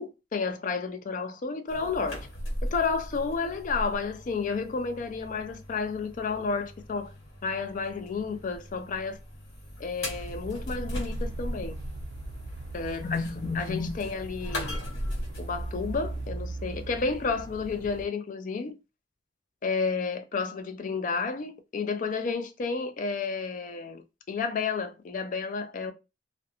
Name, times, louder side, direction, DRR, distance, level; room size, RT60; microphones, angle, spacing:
voice 1, 0.0-2.3 2.7-7.1 7.4-9.2 9.8-11.8 12.7-14.8 15.4-18.7 19.6-24.0 24.3-25.9, left 4 dB, 45° left, 0.3 m, -31 dB
sound 1, 1.7-16.3, equal, 80° left, 1.1 m, -39 dB
sound 2, 10.0-18.1, right 2 dB, 60° right, 0.4 m, -39 dB
2.4 x 2.1 x 2.7 m
head